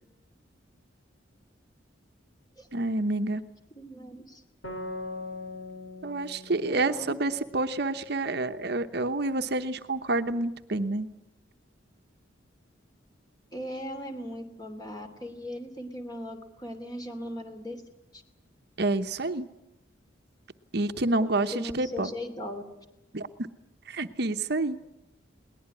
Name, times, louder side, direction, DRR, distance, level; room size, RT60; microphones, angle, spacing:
voice 1, 2.7-3.4 6.0-11.1 18.8-19.5 20.7-22.1 23.1-23.3 23.9-24.8, right 2 dB, 55° right, 9 dB, 1.0 m, -28 dB
voice 2, 3.7-4.4 6.6-7.1 13.5-17.8 18.1-18.2 21.2-22.6, equal, 20° left, 7 dB, 2.8 m, -38 dB
sound 1, 4.6-8.1, left 2 dB, 80° left, 4.6 m, -41 dB
21.5 x 19.0 x 9.7 m, 0.88 s
head